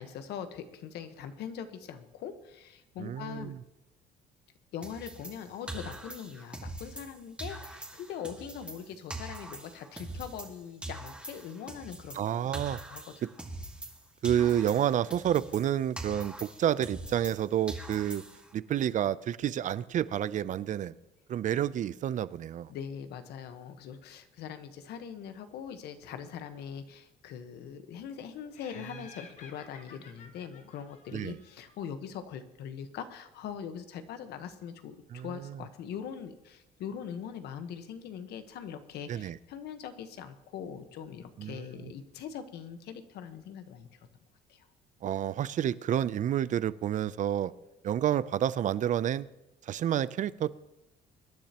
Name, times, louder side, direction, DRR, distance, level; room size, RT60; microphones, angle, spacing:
voice 1, 0.0-3.5 4.7-12.2 12.9-13.0 22.7-44.0 44.5-44.7, left 8 dB, 75° left, 9 dB, 1.2 m, -42 dB
voice 2, 3.0-3.6 12.1-12.8 14.2-18.2 18.5-21.0 21.3-22.7 31.1-31.4 35.1-35.6 39.1-39.4 41.4-41.9 45.0-47.5 47.8-49.3 49.6-50.5, right 10 dB, 50° right, 17 dB, 0.5 m, -29 dB
sound 1, 4.8-7.1 7.4-10.6 10.8-14.0 14.2-17.4 17.7-18.5, right 1 dB, 5° right, 1.8 m, -43 dB
Laughter, 28.5-31.9, left 5 dB, 45° left, 1.6 m, -53 dB
24.0 x 10.5 x 3.0 m, 0.89 s
cardioid pair, 110°, 17 cm